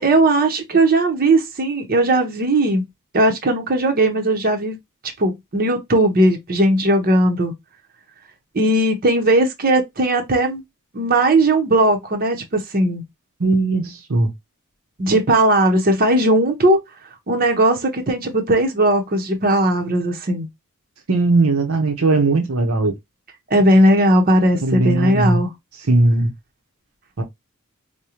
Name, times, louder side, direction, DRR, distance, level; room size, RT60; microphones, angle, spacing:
voice 1, 0.0-2.8 3.1-4.8 5.2-7.5 8.5-10.6 10.9-13.0 15.0-16.8 17.3-20.5 23.5-25.5, right 1 dB, 40° right, 0.8 m, -17 dB
voice 2, 13.4-14.3 21.1-22.9 24.6-25.4 25.9-26.3 27.2-27.3, right 2 dB, 70° right, 0.8 m, -18 dB
4.9 x 2.2 x 2.8 m
head